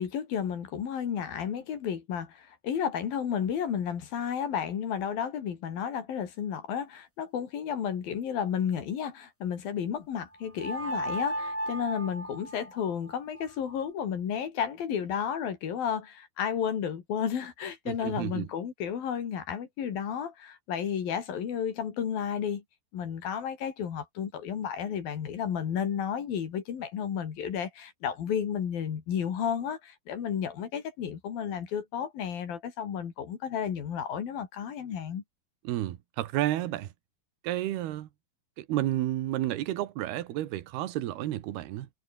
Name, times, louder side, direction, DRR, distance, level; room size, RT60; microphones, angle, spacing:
voice 1, 0.0-22.6 22.9-35.2, left 8 dB, 65° left, 4.4 m, -32 dB
sound 1, 10.6-13.8, equal, 5° right, 3.5 m, -35 dB
voice 2, 17.9-18.5 35.6-36.9 37.4-38.1 38.6-41.9, right 14 dB, 80° right, 3.4 m, -31 dB
omnidirectional pair, 4.5 m